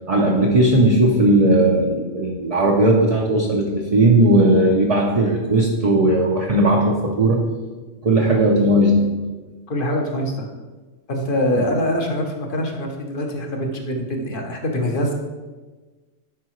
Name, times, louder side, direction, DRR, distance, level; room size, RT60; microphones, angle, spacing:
voice 1, 0.1-7.4 8.0-9.1, right 1 dB, 35° right, -1 dB, 0.6 m, -17 dB
voice 2, 9.7-10.5 11.1-15.1, left 1 dB, 45° left, 2 dB, 1.0 m, -24 dB
10.5 x 4.7 x 3.1 m, 1.3 s
omnidirectional pair, 1.4 m